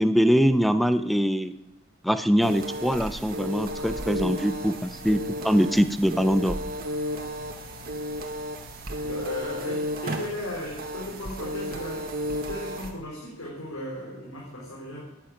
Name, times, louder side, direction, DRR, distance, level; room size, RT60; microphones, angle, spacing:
voice 1, 0.0-1.5 2.0-6.6, equal, ahead, 11 dB, 0.7 m, -23 dB
sound 1, 2.4-12.9, equal, 45° right, 1.9 m, -33 dB
voice 2, 9.0-15.0, left 1 dB, 90° left, -4 dB, 4.3 m, -36 dB
11.0 x 10.5 x 8.6 m, 0.90 s
head